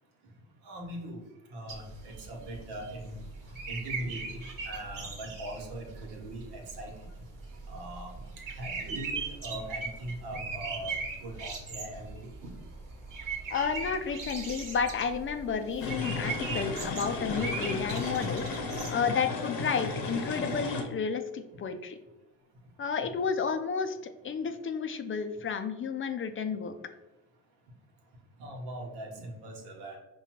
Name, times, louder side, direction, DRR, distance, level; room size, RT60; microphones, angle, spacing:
voice 1, 0.6-1.2 1.5-3.1 3.7-7.1 7.7-8.1 8.5-10.9 11.2-12.3 28.4-30.0, right 1 dB, 75° right, 1 dB, 1.2 m, -40 dB
sound 1, 1.7-18.9, right 4 dB, 55° right, 1.2 m, -40 dB
voice 2, 13.5-22.0 22.8-26.8, left 6 dB, 30° left, 8 dB, 0.5 m, -32 dB
sound 2, 15.8-20.8, left 3 dB, 60° left, 0.9 m, -34 dB
5.0 x 2.3 x 3.0 m, 1.0 s
supercardioid pair, 65°, 40 cm